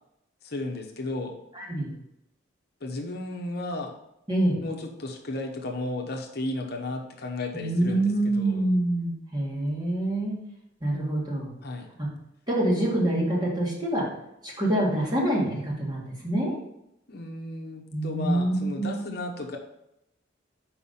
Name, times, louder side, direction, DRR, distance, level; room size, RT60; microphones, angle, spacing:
voice 1, 0.4-1.4 2.8-3.9 4.6-8.6 11.6-11.9 17.1-19.6, left 2 dB, 55° left, 2 dB, 0.9 m, -34 dB
voice 2, 1.5-1.9 4.3-4.6 7.5-10.3 10.8-11.5 12.0-12.1 12.5-14.0 14.4-16.6 17.9-18.9, right 1 dB, 20° right, -4 dB, 2.1 m, -26 dB
5.9 x 4.9 x 5.5 m, 0.82 s
head